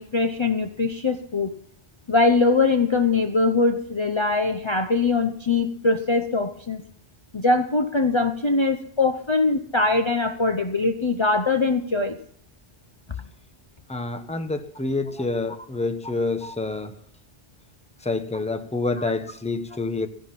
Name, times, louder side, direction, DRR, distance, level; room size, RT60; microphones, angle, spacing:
voice 1, 0.0-1.6 2.1-6.8 7.3-12.2 16.4-16.5 19.0-19.1, left 3 dB, 30° left, 6 dB, 0.8 m, -22 dB
voice 2, 13.9-17.0 18.0-20.1, left 3 dB, 5° left, 7 dB, 1.0 m, -27 dB
15.5 x 11.5 x 5.8 m, 0.66 s
omnidirectional pair, 1.1 m